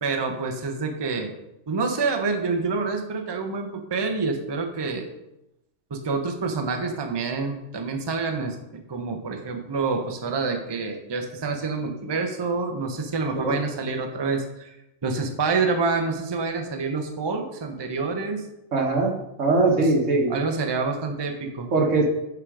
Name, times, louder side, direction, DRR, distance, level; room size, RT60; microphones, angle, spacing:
voice 1, 0.0-1.3 1.7-5.1 5.9-8.6 8.9-14.7 15.0-18.4 19.8-19.9 20.3-21.7, right 4 dB, 25° right, 4 dB, 0.6 m, -27 dB
voice 2, 18.7-19.1 19.4-20.3 21.7-22.0, right 3 dB, 75° right, 0 dB, 1.5 m, -21 dB
7.8 x 3.7 x 4.8 m, 0.88 s
omnidirectional pair, 1.3 m